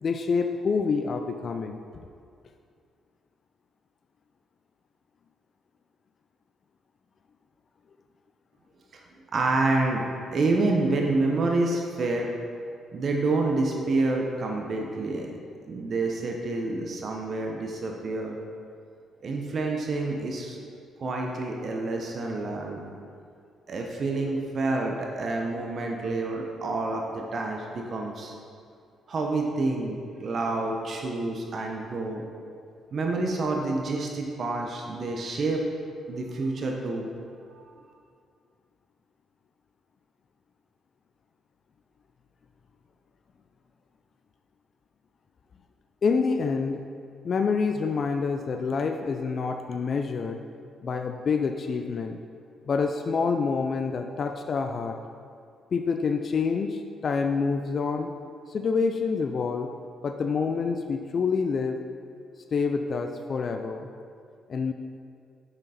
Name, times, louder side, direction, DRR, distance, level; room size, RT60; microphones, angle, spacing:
voice 1, 0.0-1.8 46.0-46.8 47.2-50.4 50.8-52.2 52.7-55.0 55.7-58.1 58.5-59.7 60.0-61.8 62.5-63.9 64.5-64.7, left 5 dB, 50° left, 6 dB, 0.4 m, -27 dB
voice 2, 9.3-10.0 10.3-12.3 12.9-15.3 15.7-18.4 19.2-20.6 21.0-22.8 23.7-28.3 29.1-32.2 32.9-35.6 36.1-37.1 37.5-37.8, right 2 dB, 50° right, 1 dB, 0.8 m, -28 dB
6.6 x 5.9 x 4.2 m, 2.3 s
cardioid pair, 90°, 0 cm